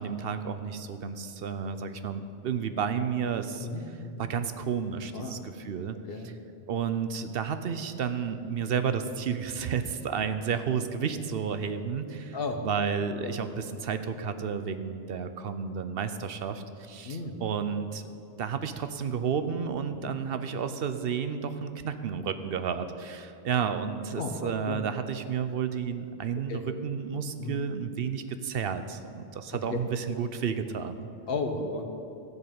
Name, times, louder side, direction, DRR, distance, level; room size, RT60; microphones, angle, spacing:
voice 1, 0.0-3.7 4.2-5.9 6.7-12.4 12.6-18.0 18.4-31.1, right 7 dB, 65° right, 10 dB, 0.9 m, -31 dB
voice 2, 3.6-4.2 5.1-5.4 6.1-6.3 12.3-12.6 13.2-13.4 17.0-17.4 19.9-20.1 24.2-24.8 26.5-26.6 27.4-27.6 27.9-28.0 29.5-29.8 31.3-31.8, left 3 dB, 60° left, 5 dB, 1.2 m, -34 dB
13.5 x 5.4 x 8.8 m, 2.7 s
omnidirectional pair, 1.1 m